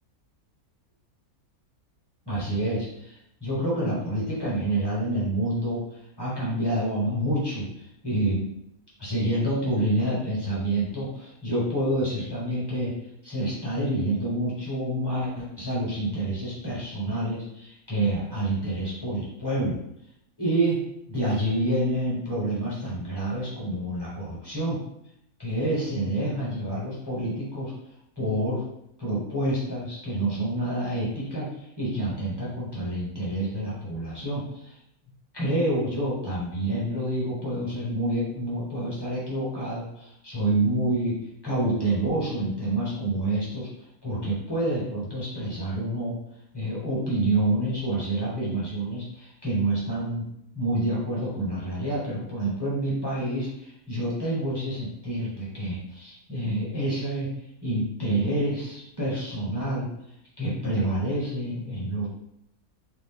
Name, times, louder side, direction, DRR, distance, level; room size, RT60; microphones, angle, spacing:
voice 1, 2.3-8.5 9.0-12.9 13.2-19.8 20.4-20.8 21.1-24.8 25.4-27.7 28.2-28.6 29.0-34.8 35.3-41.2 41.4-43.7 44.0-46.2 46.5-50.3 50.5-57.3 57.6-59.9 60.4-62.1, right 1 dB, 20° left, -7 dB, 1.1 m, -28 dB
3.1 x 2.5 x 3.7 m, 0.77 s
omnidirectional pair, 1.5 m